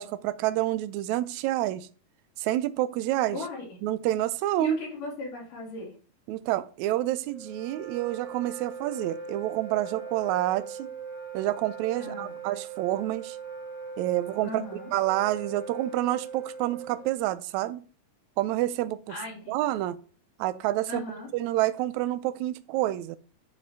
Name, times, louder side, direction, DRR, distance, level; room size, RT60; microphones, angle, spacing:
voice 1, 0.0-1.9 2.4-3.4 3.8-4.8 6.3-10.9 11.3-13.4 14.0-14.6 14.9-17.8 18.4-19.0 19.5-20.0 20.4-21.0 21.3-23.2, right 14 dB, 90° right, 1.7 m, -28 dB
voice 2, 3.3-3.7 4.6-5.9 12.0-12.3 14.4-14.9 19.1-19.6 20.9-21.3, left 3 dB, 70° left, 4.1 m, -37 dB
Wind instrument woodwind instrument, 7.2-17.2, right 5 dB, 50° right, 4.4 m, -40 dB
11.5 x 5.0 x 3.6 m
omnidirectional pair, 3.9 m